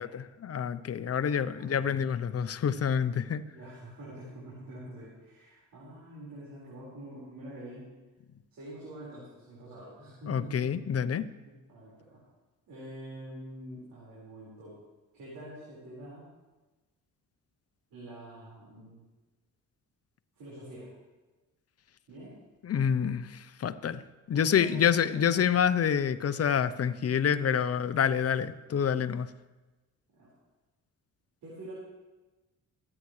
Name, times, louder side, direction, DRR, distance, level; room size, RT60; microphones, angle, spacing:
voice 1, 0.0-3.4 10.3-11.2 22.6-24.0 24.3-29.3, left 8 dB, 45° left, 13 dB, 0.8 m, -27 dB
voice 2, 1.1-1.9 3.4-7.9 8.5-10.8 11.4-12.2 12.7-14.8 15.1-16.2 17.9-19.0 20.4-20.9 22.1-22.4 24.3-25.0 25.4-25.5 30.2-30.3 31.4-31.7, right 1 dB, 75° right, -8 dB, 5.1 m, -46 dB
23.0 x 9.9 x 3.3 m, 1.2 s
supercardioid pair, 65°, 35 cm